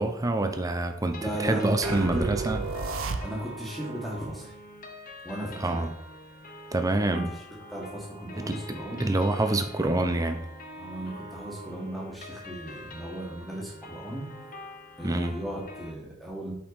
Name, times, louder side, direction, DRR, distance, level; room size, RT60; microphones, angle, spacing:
voice 1, 0.0-2.6 5.6-5.9 6.7-7.3 8.4-8.6 9.0-10.4 15.0-15.4, right 2 dB, 15° right, 7 dB, 0.5 m, -26 dB
sound 1, 1.1-15.9, left 1 dB, 35° left, 0.6 m, -45 dB
voice 2, 1.2-2.3 3.2-4.5 5.2-5.9 7.1-7.2 7.7-9.1 10.8-14.3 15.0-16.5, right 1 dB, ahead, -5 dB, 1.6 m, -36 dB
sound 2, 1.8-3.7, right 3 dB, 60° right, 0.6 m, -32 dB
5.7 x 5.3 x 4.1 m, 0.76 s
head